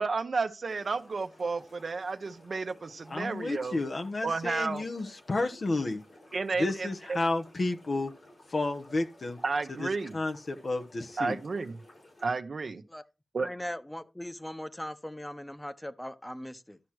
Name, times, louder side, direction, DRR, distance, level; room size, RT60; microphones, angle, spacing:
voice 1, 0.0-3.8 4.2-4.9 6.3-7.2 9.4-10.2 11.2-11.8 12.2-12.8 13.3-13.5, right 4 dB, 80° right, 0.9 m, -32 dB
sound 1, 0.6-12.3, left 1 dB, 90° left, 6.9 m, -56 dB
voice 2, 3.1-6.0 6.6-8.1 8.5-9.4 9.8-11.4, left 2 dB, 70° left, 1.2 m, -31 dB
voice 3, 13.4-16.8, left 1 dB, 15° left, 1.0 m, -39 dB
12.5 x 5.9 x 4.8 m
cardioid pair, 40°, 0 cm